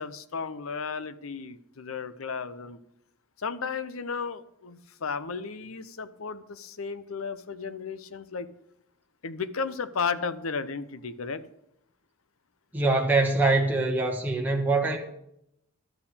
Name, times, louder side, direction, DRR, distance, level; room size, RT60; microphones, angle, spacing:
voice 1, 0.0-2.8 3.4-8.5 9.2-11.4, left 5 dB, 90° left, 0.8 m, -34 dB
voice 2, 12.7-15.0, right 3 dB, 10° right, 1.3 m, -23 dB
12.5 x 5.9 x 8.0 m
head